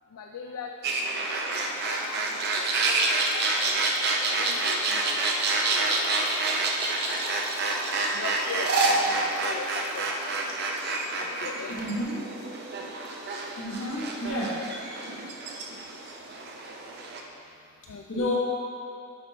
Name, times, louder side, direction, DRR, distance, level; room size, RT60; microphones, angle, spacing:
voice 1, 0.1-0.9 1.5-2.3 2.6-3.7 4.3-5.0 5.7-6.2 8.1-10.1 11.4-11.8 17.9-18.4, left 5 dB, 90° left, 2 dB, 0.3 m, -40 dB
sound 1, 0.8-17.2, right 2 dB, 50° right, 0.5 m, -28 dB
sound 2, 1.5-10.8, left 2 dB, 40° left, 0.7 m, -43 dB
voice 2, 11.7-12.3 13.6-14.7 18.1-18.4, left 1 dB, 70° left, -5 dB, 1.3 m, -30 dB
9.7 x 4.1 x 3.0 m, 2.6 s
head